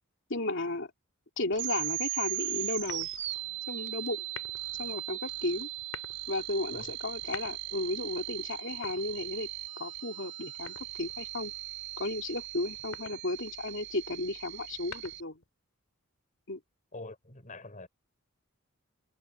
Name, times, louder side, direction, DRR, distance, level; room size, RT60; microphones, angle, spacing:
voice 1, 0.3-0.9 1.4-3.1 3.7-4.2 4.8-5.7 6.3-9.5 9.8-11.5 12.0-15.4 16.5-16.6, left 2 dB, 60° left, 2.8 m, -34 dB
sound 1, 1.5-15.2, right 17 dB, 55° right, 4.8 m, -38 dB
sound 2, 2.8-3.5 4.2-4.8 5.7-6.2 7.1-7.9 8.7-9.6 10.7-11.3 12.7-13.3 14.6-15.5, left 6 dB, 80° left, 2.6 m, -47 dB
voice 2, 16.9-17.9, left 2 dB, 35° left, 4.7 m, -45 dB
head